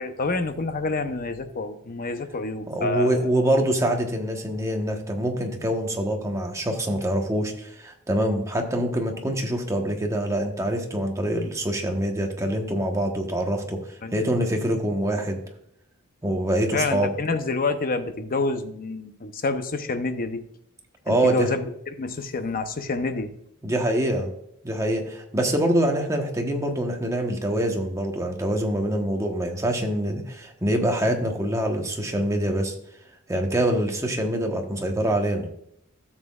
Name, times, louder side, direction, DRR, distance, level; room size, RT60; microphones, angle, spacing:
voice 1, 0.0-3.3 14.0-14.1 16.7-20.4 21.1-21.6 22.0-23.3, left 3 dB, 40° left, 9 dB, 0.7 m, -27 dB
voice 2, 2.7-13.8 14.1-15.4 16.2-17.1 21.0-21.5 23.6-24.3 24.6-32.7 33.3-35.5, right 1 dB, 15° right, 2 dB, 1.2 m, -25 dB
13.0 x 7.4 x 2.4 m, 0.74 s
head